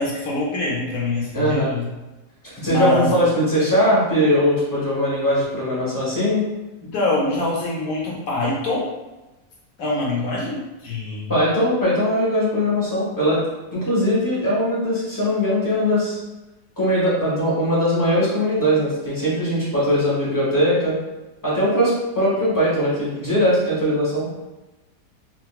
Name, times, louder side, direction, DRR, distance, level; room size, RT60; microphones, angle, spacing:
voice 1, 0.0-1.9 2.6-3.2 6.8-8.9 9.8-11.4, left 2 dB, 65° left, -4 dB, 1.0 m, -24 dB
voice 2, 1.3-1.7 2.6-6.4 11.3-13.4 13.7-16.2 16.8-20.9 21.4-24.3, equal, 15° left, -7 dB, 0.8 m, -20 dB
3.6 x 2.4 x 2.3 m, 1.1 s
omnidirectional pair, 1.8 m